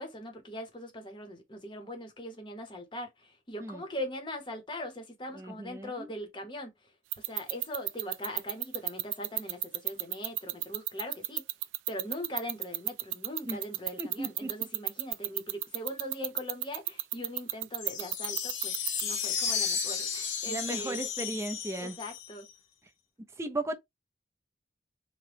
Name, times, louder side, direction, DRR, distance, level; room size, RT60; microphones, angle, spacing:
voice 1, 0.0-6.7 7.3-11.4 11.9-18.7 19.0-21.0 21.8-22.5, left 1 dB, 25° left, 0.8 m, -41 dB
voice 2, 5.3-6.1 13.5-13.6 14.0-14.7 20.5-22.0 23.4-23.7, right 2 dB, 15° right, 0.4 m, -36 dB
sound 1, 7.1-19.0, right 17 dB, 90° right, 0.3 m, -31 dB
sound 2, 17.8-22.5, left 6 dB, 75° left, 0.6 m, -33 dB
2.9 x 2.1 x 3.2 m
head